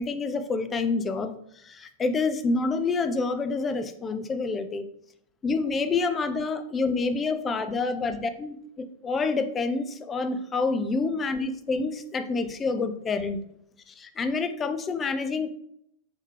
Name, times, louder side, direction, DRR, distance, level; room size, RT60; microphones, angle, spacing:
voice 1, 0.0-1.3 1.7-4.8 5.4-8.5 9.0-13.4 14.0-15.5, left 3 dB, 20° left, 9 dB, 0.4 m, -27 dB
4.3 x 3.2 x 3.2 m, 0.73 s
figure-of-eight pair, 95°, 0 cm